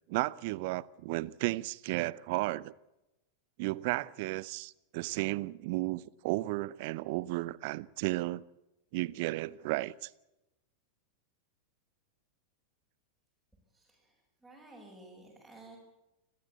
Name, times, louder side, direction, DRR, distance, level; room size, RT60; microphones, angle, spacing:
voice 1, 0.1-2.7 3.6-8.4 8.9-10.1, right 20 dB, 50° right, 0.7 m, -33 dB
voice 2, 13.7-15.8, right 2 dB, ahead, 6.8 m, -54 dB
30.0 x 13.0 x 8.3 m
figure-of-eight pair, 90°, 0 cm